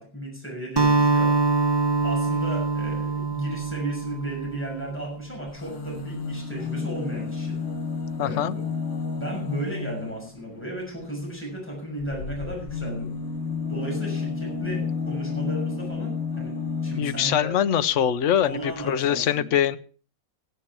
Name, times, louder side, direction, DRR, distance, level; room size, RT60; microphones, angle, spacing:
voice 1, 0.0-1.3 2.0-7.6 8.2-8.6 9.2-13.1 13.7-16.6 16.8-17.5 18.4-19.5, right 1 dB, 5° left, -1 dB, 6.4 m, -35 dB
Acoustic guitar, 0.8-5.2, right 4 dB, 35° right, 0.4 m, -24 dB
sound 1, 5.5-10.3 12.0-17.5 18.4-18.5 18.7-18.8, left 4 dB, 85° left, 2.6 m, -31 dB
voice 2, 8.2-8.5 17.0-19.8, left 9 dB, 55° left, 12 dB, 0.9 m, -23 dB
15.5 x 10.0 x 6.0 m, 0.41 s
omnidirectional pair, 2.0 m